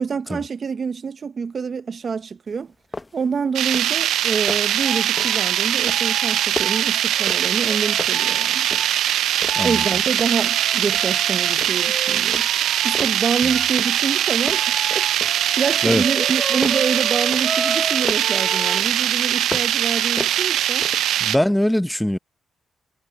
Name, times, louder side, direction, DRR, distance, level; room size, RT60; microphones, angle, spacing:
voice 1, 0.0-2.7 3.1-8.7 9.6-12.5 12.8-20.9, right 5 dB, 50° right, 1.1 m, -27 dB
sound 1, 2.5-2.6 2.9-3.3 3.6-4.0 4.3-4.8 5.2-5.5 5.9-7.7 8.0-9.1 9.4-10.5 10.9-11.2 11.6-12.0 12.3-13.3 13.8-14.2 14.5-15.5 15.9-18.4 18.8-19.9 20.2-21.2, left 2 dB, 25° left, 1.2 m, -35 dB
sound 2, 3.6-21.4, right 12 dB, 85° right, 0.5 m, -21 dB
sound 3, 4.8-8.9 9.5-18.8, right 1 dB, 15° right, 0.7 m, -34 dB
voice 2, 21.2-22.2, left 1 dB, 5° left, 1.0 m, -21 dB
supercardioid pair, 60°, 0 cm